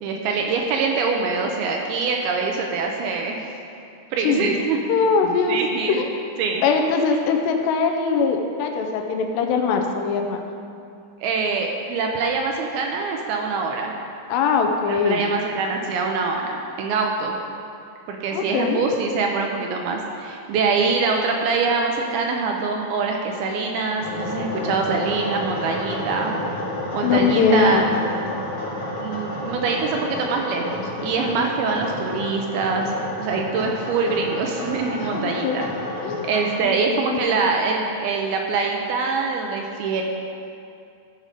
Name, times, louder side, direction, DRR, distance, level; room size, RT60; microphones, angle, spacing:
voice 1, 0.0-3.4 4.1-4.8 5.5-6.0 6.4-6.6 11.2-14.0 14.9-17.4 18.1-26.3 26.9-27.9 29.0-35.7 36.2-40.0, right 4 dB, 80° right, 1 dB, 2.3 m, -24 dB
voice 2, 4.9-5.6 5.9-6.2 6.6-10.4 14.3-15.2 18.3-18.8 27.0-27.8 35.0-35.6 36.0-36.3 36.6-37.4, left 5 dB, 90° left, 3 dB, 2.8 m, -21 dB
sound 1, 24.0-36.6, left 1 dB, 65° left, 1.3 m, -31 dB
14.0 x 4.9 x 5.1 m, 2.5 s
omnidirectional pair, 5.0 m